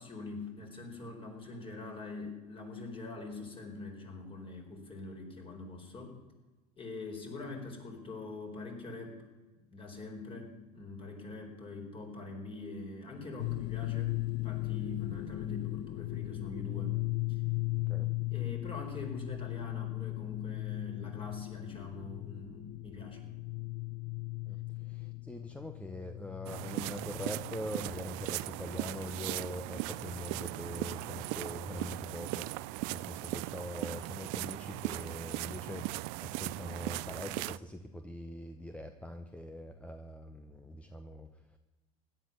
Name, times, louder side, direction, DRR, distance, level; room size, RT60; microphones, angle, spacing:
voice 1, 0.0-6.2 6.8-9.2 9.7-17.0 17.3-17.4 18.3-23.2, left 3 dB, 30° left, 2 dB, 4.5 m, -43 dB
sound 1, 13.4-31.7, left 23 dB, 50° left, 0.4 m, -38 dB
voice 2, 24.8-41.3, left 1 dB, 5° left, 7 dB, 0.9 m, -43 dB
sound 2, 26.5-37.6, right 20 dB, 65° right, 0.4 m, -38 dB
16.5 x 11.5 x 6.8 m, 1.2 s
supercardioid pair, 110°, 19 cm